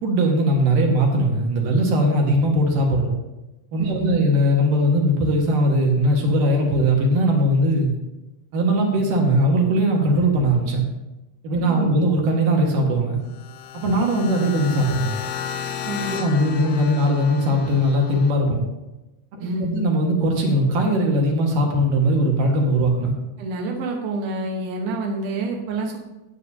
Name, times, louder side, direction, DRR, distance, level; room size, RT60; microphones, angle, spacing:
voice 1, 0.0-3.1 3.7-7.9 8.5-10.8 11.4-13.2 13.7-15.1 16.1-18.7 19.7-23.1, equal, 60° right, 1 dB, 2.6 m, -19 dB
voice 2, 3.8-4.2 11.6-12.0 15.8-16.2 19.4-19.8 23.4-26.0, right 2 dB, 80° right, 0 dB, 1.8 m, -28 dB
sound 1, 13.3-18.3, left 8 dB, 90° left, 2.4 m, -33 dB
15.0 x 9.3 x 2.8 m, 1.0 s
omnidirectional pair, 5.7 m